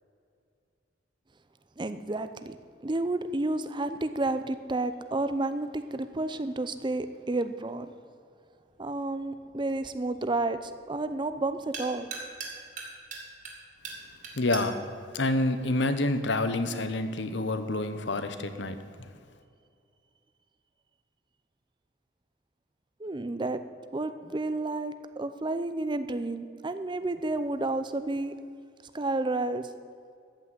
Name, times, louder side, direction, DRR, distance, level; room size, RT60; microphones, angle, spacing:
voice 1, 1.8-2.6 2.8-7.9 8.8-12.1 23.0-23.6 23.9-28.4 28.9-29.7, right 2 dB, 25° right, 11 dB, 0.6 m, -31 dB
sound 1, 8.7-16.3, right 4 dB, 45° right, 2.7 m, -44 dB
voice 2, 14.3-14.8 15.1-18.8, left 2 dB, 65° left, 9 dB, 1.0 m, -28 dB
14.0 x 6.1 x 9.5 m, 2.3 s
head